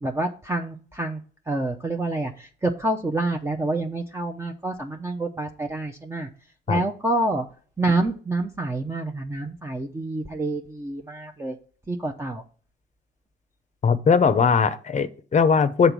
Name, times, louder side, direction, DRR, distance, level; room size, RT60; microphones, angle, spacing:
voice 1, 0.0-6.3 6.7-7.5 7.8-11.6 11.9-12.4, right 2 dB, 15° right, 0.7 m, -27 dB
voice 2, 13.8-15.9, left 5 dB, 35° left, 0.6 m, -20 dB
6.7 x 4.0 x 6.0 m
cardioid pair, 90°, 20 cm